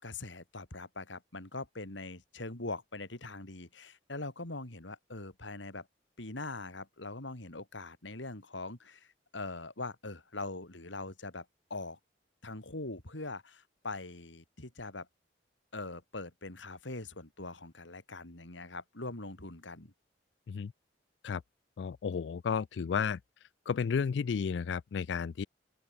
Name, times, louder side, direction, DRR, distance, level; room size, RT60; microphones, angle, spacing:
voice 1, 0.0-5.9 6.2-9.1 9.3-11.4 11.7-12.0 12.4-15.1 15.7-19.9, left 2 dB, 90° left, 3.4 m, -42 dB
voice 2, 21.8-23.2 23.7-25.5, left 6 dB, 70° left, 0.4 m, -32 dB
open air
head